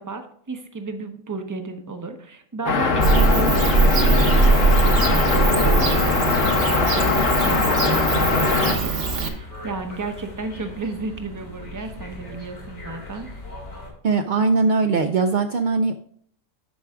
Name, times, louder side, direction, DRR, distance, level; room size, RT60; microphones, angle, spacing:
voice 1, 0.0-13.3, right 3 dB, 20° right, 7 dB, 0.5 m, -33 dB
sound 1, 2.7-8.8, left 4 dB, 70° left, 1.3 m, -21 dB
Bird / Cricket, 3.0-9.3, right 3 dB, 50° right, 1.1 m, -21 dB
sound 2, 5.1-13.9, left 1 dB, 90° left, 2.8 m, -38 dB
voice 2, 14.0-16.0, right 4 dB, 75° right, 6 dB, 0.4 m, -20 dB
11.5 x 4.6 x 3.5 m, 0.62 s
omnidirectional pair, 1.4 m